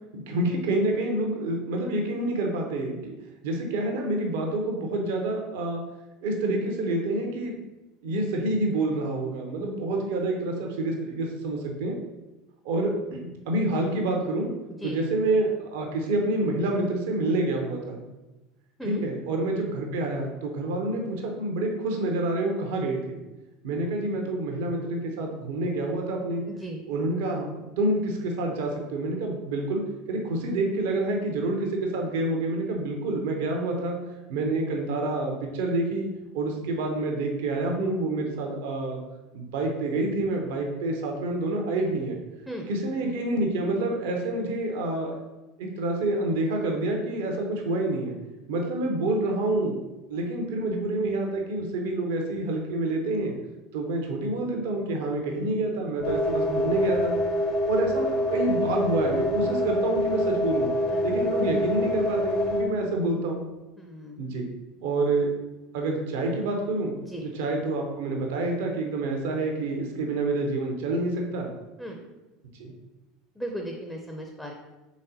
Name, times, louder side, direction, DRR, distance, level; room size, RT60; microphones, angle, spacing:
voice 1, 0.1-3.1 3.4-5.8 6.2-7.6 8.0-11.9 12.6-14.5 14.8-18.0 18.8-23.2 23.6-26.4 26.9-27.5 27.8-29.8 30.1-34.0 34.3-36.1 36.3-39.0 39.3-42.2 42.7-45.2 45.6-48.2 48.5-53.3 53.7-57.2 57.7-60.7 61.0-63.5 64.2-64.5 64.8-65.3 65.7-66.9 67.3-71.5 72.6-72.7, right 2 dB, 60° right, 1 dB, 0.6 m, -28 dB
voice 2, 26.5-26.8 42.5-42.7 60.9-61.0 63.8-64.3 67.1-67.3 71.8-72.0 73.4-74.5, equal, 5° left, 1 dB, 0.5 m, -36 dB
sound 1, 56.0-62.6, left 1 dB, 50° left, 0.8 m, -26 dB
4.0 x 3.5 x 2.7 m, 1.1 s
figure-of-eight pair, 70°, 0 cm